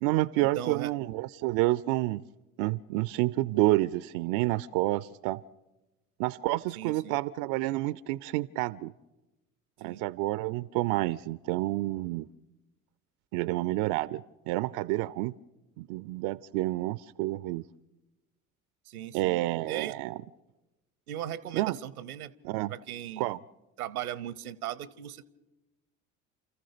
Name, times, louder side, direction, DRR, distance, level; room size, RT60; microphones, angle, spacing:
voice 1, 0.0-2.2 2.6-5.4 6.2-8.9 9.8-12.3 13.3-15.3 15.8-17.6 19.1-20.2 21.5-21.8 22.4-22.7 23.2-23.4, right 18 dB, 60° right, 19 dB, 0.6 m, -29 dB
voice 2, 0.5-0.9 6.7-7.2 9.8-10.0 18.9-19.9 21.1-22.3 22.7-23.3 23.8-25.3, right 11 dB, 85° right, 20 dB, 0.9 m, -38 dB
29.5 x 14.5 x 6.7 m, 1.1 s
hypercardioid pair, 60°, 43 cm